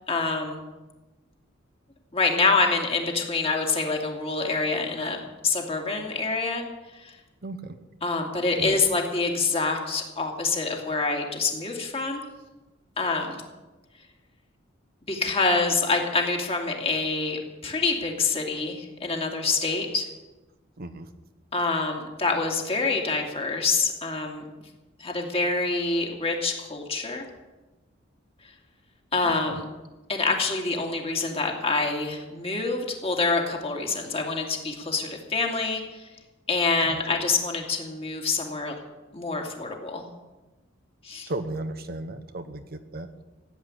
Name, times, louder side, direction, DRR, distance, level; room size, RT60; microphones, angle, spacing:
voice 1, 0.1-0.6 2.1-6.6 7.0-7.2 8.0-12.2 13.0-13.4 15.1-20.1 21.5-24.5 25.0-27.2 29.1-29.7 30.1-36.1 36.5-38.7 39.1-40.1 41.0-41.3, left 3 dB, 30° left, 1 dB, 2.5 m, -26 dB
voice 2, 7.4-7.8 8.6-8.8 20.8-21.1 29.2-29.6 36.8-37.0 41.3-43.1, right 2 dB, 50° right, 9 dB, 0.9 m, -35 dB
16.0 x 8.2 x 9.9 m, 1.1 s
head